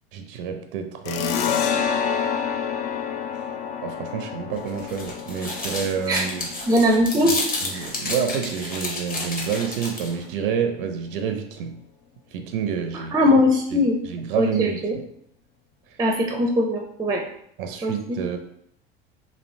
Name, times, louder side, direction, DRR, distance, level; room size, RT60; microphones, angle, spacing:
voice 1, 0.1-1.8 3.8-6.5 7.2-7.4 7.6-11.8 12.3-13.3 13.7-15.0 17.6-18.4, right 7 dB, 65° right, 6 dB, 0.5 m, -29 dB
sound 1, 1.0-8.2, left 7 dB, 50° left, 0.4 m, -28 dB
sound 2, 4.5-10.2, left 2 dB, 30° left, 0.9 m, -31 dB
voice 2, 6.7-7.4 7.7-7.8 13.1-13.9 14.3-14.9 16.0-17.2 17.8-17.9, left 1 dB, 15° right, 2 dB, 0.5 m, -20 dB
3.1 x 2.5 x 2.6 m, 0.70 s
hypercardioid pair, 75°, 30 cm